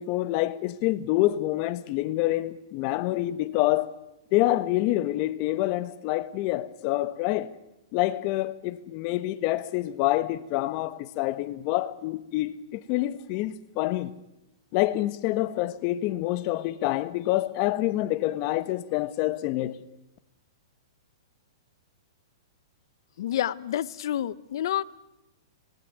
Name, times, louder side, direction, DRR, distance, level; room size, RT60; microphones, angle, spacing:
voice 1, 0.0-3.9 4.3-7.5 7.9-14.1 14.7-19.8, left 16 dB, 40° left, 1.4 m, -27 dB
voice 2, 23.2-24.8, left 11 dB, 60° left, 1.0 m, -28 dB
26.0 x 19.5 x 9.5 m
hypercardioid pair, 145°, 3 cm